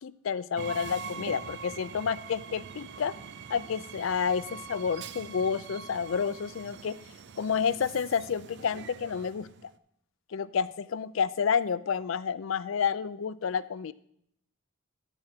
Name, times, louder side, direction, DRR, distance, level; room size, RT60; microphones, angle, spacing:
voice 1, 0.0-3.1 3.5-7.0 7.4-9.5 10.3-13.9, left 6 dB, 70° left, 16 dB, 0.4 m, -30 dB
Train, 0.6-9.7, right 6 dB, 60° right, 0.5 m, -44 dB
12.5 x 4.4 x 6.0 m, 0.69 s
head